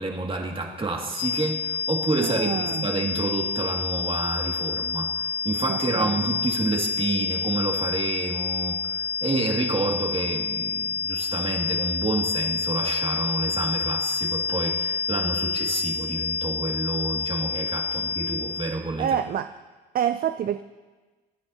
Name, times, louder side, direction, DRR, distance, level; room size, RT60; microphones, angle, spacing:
voice 1, 0.0-19.1, right 3 dB, 25° right, 1 dB, 2.1 m, -29 dB
sound 1, 1.1-18.9, left 5 dB, 35° left, 2.0 m, -28 dB
voice 2, 2.2-2.9 5.7-6.4 17.9-18.0 19.0-19.5 19.9-20.6, right 9 dB, 50° right, 10 dB, 0.4 m, -27 dB
23.5 x 9.7 x 2.8 m, 1.3 s
cardioid pair, 90°, 20 cm